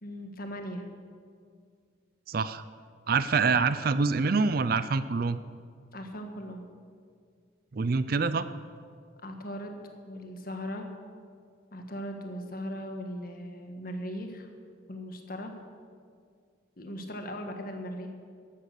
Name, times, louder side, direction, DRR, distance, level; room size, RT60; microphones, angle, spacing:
voice 1, 0.0-0.8 5.9-6.6 9.2-9.7 10.0-10.9 11.7-14.5 14.9-15.5 16.8-18.1, equal, 45° left, 4 dB, 1.6 m, -38 dB
voice 2, 2.3-2.6 3.1-5.4 7.7-8.5, right 4 dB, 50° right, 14 dB, 0.4 m, -26 dB
14.5 x 11.5 x 6.6 m, 2.1 s
head